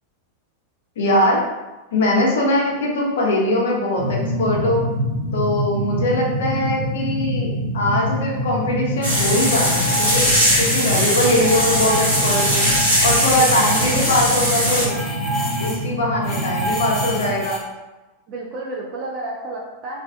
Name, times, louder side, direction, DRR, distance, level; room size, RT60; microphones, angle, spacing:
voice 1, 1.0-1.4 1.9-4.8 5.3-10.3 10.6-12.6 13.0-14.9 15.6-17.6, left 1 dB, 60° left, -2 dB, 0.6 m, -21 dB
sound 1, 4.0-17.3, equal, 60° right, 0.9 m, -26 dB
sound 2, 9.0-10.6 10.8-15.9 16.2-17.6, left 1 dB, 20° left, 0.7 m, -30 dB
sound 3, 9.0-14.8, equal, 85° right, 1.1 m, -20 dB
voice 2, 18.3-20.0, right 2 dB, 35° right, -3 dB, 0.4 m, -31 dB
2.4 x 2.2 x 2.3 m, 1.1 s
figure-of-eight pair, 90°, 0 cm